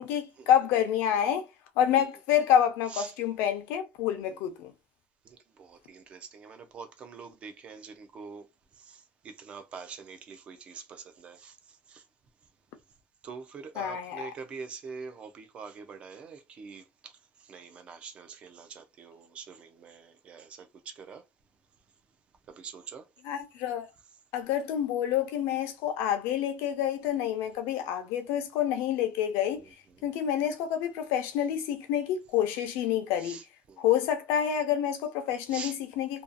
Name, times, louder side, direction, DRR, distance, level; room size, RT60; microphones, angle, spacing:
voice 1, 0.0-1.4 1.8-4.7 13.8-14.3 23.2-23.9 24.3-29.6 30.0-33.4 33.8-36.2, left 10 dB, 75° left, 0.6 m, -28 dB
voice 2, 5.2-8.5 8.7-12.0 13.2-21.2 22.5-23.1 29.6-29.7 33.2-33.8 35.5-35.8, right 5 dB, 30° right, 0.4 m, -45 dB
2.6 x 2.3 x 2.3 m
cardioid pair, 180°, 4 cm